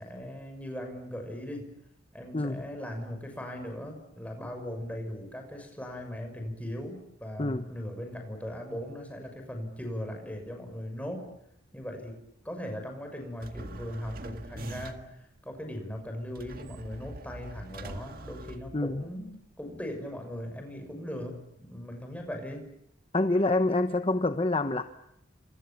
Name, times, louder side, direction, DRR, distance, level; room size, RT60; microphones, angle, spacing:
voice 1, 0.0-1.7 2.1-11.3 11.7-15.1 15.4-22.6, equal, 10° left, 4 dB, 6.3 m, -39 dB
voice 2, 2.3-2.6 7.4-7.7 18.7-19.0 23.1-24.8, left 2 dB, 30° left, 8 dB, 1.0 m, -26 dB
sound 1, 13.4-15.2 16.4-19.2, right 2 dB, 50° right, 1.8 m, -43 dB
29.5 x 26.5 x 7.2 m, 0.78 s
head